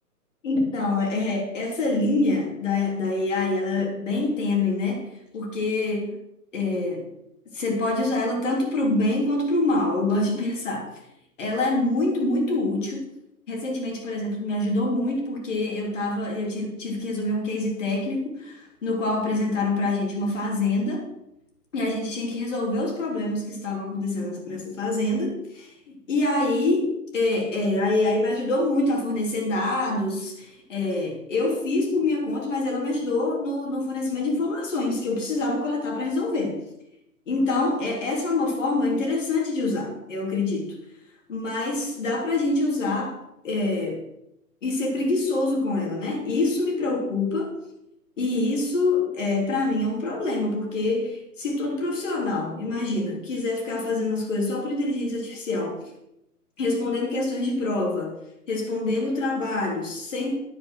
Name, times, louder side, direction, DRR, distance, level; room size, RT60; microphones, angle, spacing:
voice 1, 0.4-6.2 6.5-7.1 7.5-10.9 11.4-13.1 13.5-21.1 21.7-25.7 26.1-36.6 37.3-40.8 41.3-43.2 43.4-44.0 44.6-47.5 48.2-55.8 56.6-58.1 58.5-60.4, left 2 dB, 50° left, 1 dB, 3.5 m, -25 dB
10.0 x 7.7 x 6.2 m, 0.81 s
hypercardioid pair, 160°, 47 cm